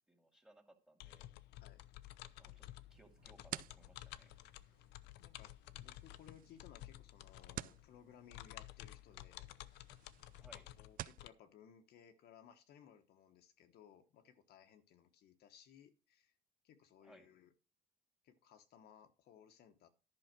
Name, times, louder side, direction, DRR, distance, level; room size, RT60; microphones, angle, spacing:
voice 1, 0.1-1.3 2.4-4.3 10.4-10.6 17.0-17.3, right 1 dB, 5° right, 2.1 m, -65 dB
sound 1, 1.0-11.3, left 15 dB, 85° left, 0.6 m, -54 dB
sound 2, 2.9-11.3, right 13 dB, 55° right, 0.4 m, -53 dB
voice 2, 5.2-9.5 10.5-16.4 16.6-17.5 18.2-19.9, left 9 dB, 70° left, 1.2 m, -62 dB
11.0 x 5.6 x 5.9 m
cardioid pair, 110°, 17 cm